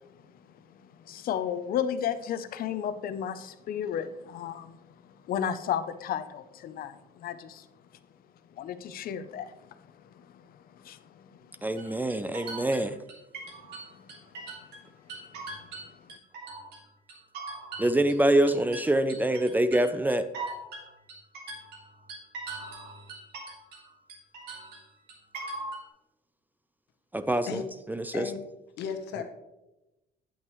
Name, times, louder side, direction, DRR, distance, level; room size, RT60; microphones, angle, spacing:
voice 1, 1.1-4.8 5.2-7.7 8.6-11.3 13.9-14.0 15.1-15.2, left 9 dB, 60° left, 11 dB, 0.6 m, -34 dB
voice 2, 11.6-13.0 17.8-20.3 27.1-28.3, right 1 dB, 10° right, 11 dB, 0.4 m, -25 dB
sound 1, 11.8-14.8 15.1-16.8 17.1-23.8 24.1-25.8, right 3 dB, 75° right, 2.3 m, -40 dB
voice 3, 28.1-28.4 28.8-29.2, left 7 dB, 80° left, 6 dB, 1.0 m, -34 dB
8.8 x 8.7 x 3.1 m, 0.97 s
cardioid pair, 110°, 17 cm